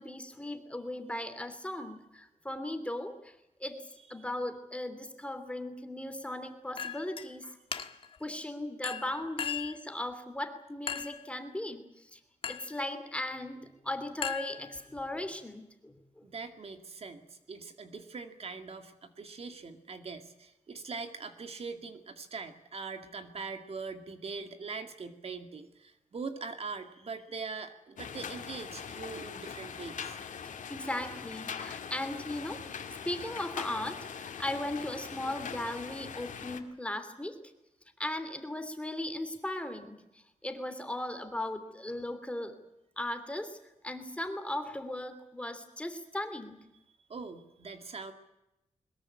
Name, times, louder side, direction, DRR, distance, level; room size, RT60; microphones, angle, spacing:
voice 1, 0.0-7.6 8.2-12.2 12.5-16.2 30.7-32.8 33.0-37.4 38.0-42.6 43.0-43.6 43.8-46.6, left 1 dB, 10° left, 8 dB, 2.9 m, -37 dB
Chink clink, 6.8-7.3 7.7-8.2 8.8-9.8 10.9-11.3 12.4-12.8 14.2-15.0, left 7 dB, 45° left, 1.5 m, -37 dB
voice 2, 16.2-30.3 47.1-48.1, right 4 dB, 50° right, 7 dB, 2.1 m, -42 dB
sound 1, 28.0-36.6, left 7 dB, 90° left, 2.3 m, -42 dB
22.0 x 20.5 x 8.7 m, 0.90 s
wide cardioid pair, 135°, 13 cm